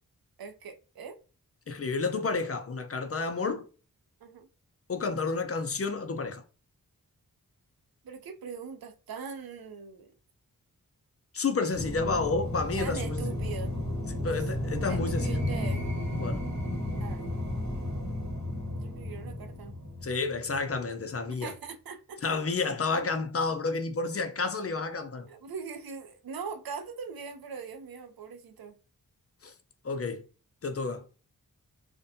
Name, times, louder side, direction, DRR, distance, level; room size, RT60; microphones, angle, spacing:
voice 1, 0.4-1.2 4.2-4.5 8.0-10.1 12.8-13.8 14.4-14.5 14.9-15.8 17.0-17.2 18.7-19.7 21.2-22.2 25.3-28.7, right 5 dB, 90° right, 0.6 m, -41 dB
voice 2, 1.7-3.7 4.9-6.4 11.3-13.3 14.0-15.4 16.2-16.5 20.0-21.5 22.2-25.3 29.4-29.5 29.8-30.2 30.6-31.0, left 4 dB, 40° left, 0.5 m, -30 dB
sound 1, 11.7-20.8, left 1 dB, 50° right, 1.0 m, -33 dB
2.6 x 2.1 x 2.5 m
wide cardioid pair, 60°, 35 cm